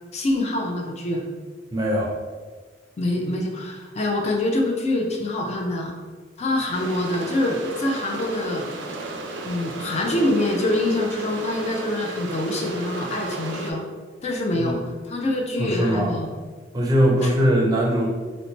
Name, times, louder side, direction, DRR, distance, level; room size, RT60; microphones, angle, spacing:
voice 1, 0.1-1.3 3.0-6.0 6.4-8.7 9.4-13.8 14.2-14.8 15.0-16.3 17.2-17.3, left 1 dB, 35° left, 1 dB, 0.4 m, -25 dB
voice 2, 1.7-2.2 14.6-14.8 15.6-16.1 16.7-18.1, equal, 20° right, -2 dB, 0.5 m, -21 dB
sound 1, 6.7-13.7, right 2 dB, 85° right, 0.5 m, -34 dB
2.9 x 2.1 x 3.9 m, 1.4 s
head